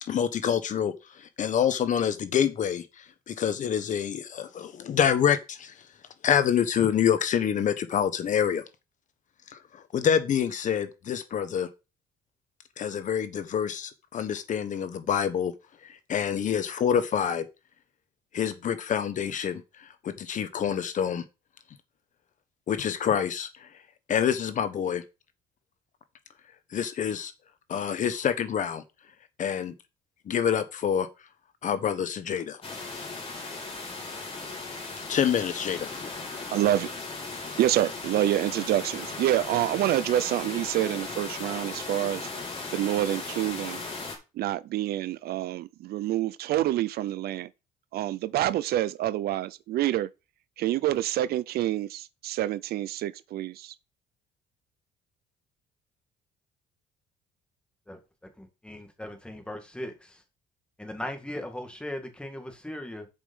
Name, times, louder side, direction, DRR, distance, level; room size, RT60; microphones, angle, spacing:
voice 1, 0.0-5.7 6.2-8.6 9.5-11.7 12.8-15.5 15.8-17.5 18.3-21.2 22.7-23.7 24.1-25.0 26.7-27.3 27.7-28.8 29.4-29.7 30.3-31.1 31.6-32.6 32.9-33.1 35.1-35.9, left 8 dB, 50° left, 1.1 m, -27 dB
sound 1, 32.6-44.2, left 3 dB, 30° left, 3.7 m, -37 dB
voice 2, 36.5-36.9 37.6-42.3 42.7-43.8 44.4-47.5 47.9-50.1 50.6-53.7, right 13 dB, 65° right, 0.5 m, -27 dB
voice 3, 58.4-60.2 60.8-63.1, left 1 dB, 5° left, 2.1 m, -38 dB
7.4 x 5.3 x 5.5 m
cardioid pair, 110°, 17 cm